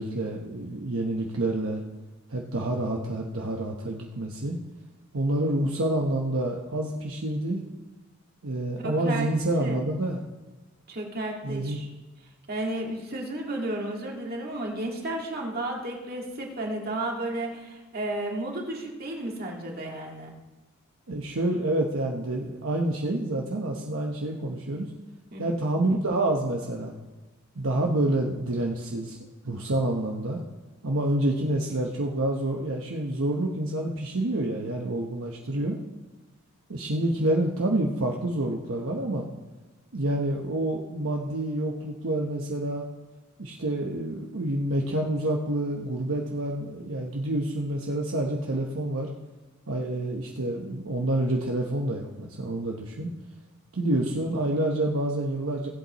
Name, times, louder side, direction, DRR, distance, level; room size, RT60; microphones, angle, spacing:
voice 1, 0.0-1.8 2.3-4.6 5.1-7.6 8.4-10.2 11.4-11.8 21.1-24.9 25.4-26.9 27.5-29.2 29.4-30.4 30.8-35.8 36.7-39.3 39.9-42.9 43.4-49.1 49.7-53.1 53.7-55.7, right 1 dB, 65° right, 0 dB, 1.0 m, -28 dB
voice 2, 8.8-9.3 9.6-9.8 10.9-11.9 12.5-20.3 25.3-25.6, right 1 dB, 45° right, 0 dB, 2.0 m, -33 dB
18.5 x 8.3 x 3.0 m, 1.2 s
head